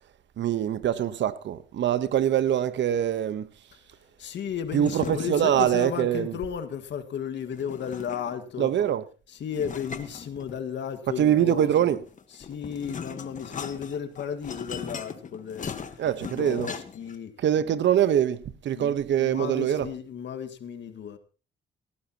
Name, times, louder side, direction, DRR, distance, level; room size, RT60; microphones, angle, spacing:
voice 1, 0.4-3.5 4.7-6.4 8.6-9.0 11.2-12.0 16.0-16.7 17.4-19.9, right 10 dB, 65° right, 1.1 m, -24 dB
voice 2, 4.2-8.7 9.3-12.0 12.3-17.4 18.7-21.2, left 8 dB, 65° left, 1.9 m, -34 dB
sound 1, 4.7-6.1 7.5-8.5 9.5-10.9 12.1-17.2, left 6 dB, 40° left, 1.4 m, -39 dB
18.0 x 14.5 x 3.0 m
cardioid pair, 90°, 20 cm